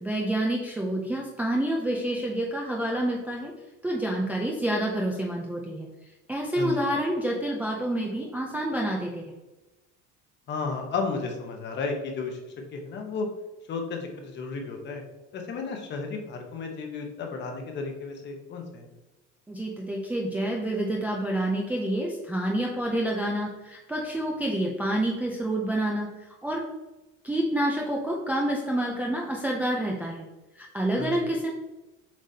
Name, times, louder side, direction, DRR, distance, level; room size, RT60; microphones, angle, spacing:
voice 1, 0.0-3.5 3.8-5.9 6.3-9.2 19.5-26.1 26.4-26.6 27.2-30.2 30.6-31.5, right 1 dB, 5° right, -2 dB, 0.4 m, -28 dB
voice 2, 10.5-13.3 13.7-15.0 15.3-18.9 31.0-31.3, left 4 dB, 35° left, 3 dB, 1.0 m, -33 dB
7.5 x 4.9 x 2.8 m, 1.1 s
cardioid pair, 160°, 33 cm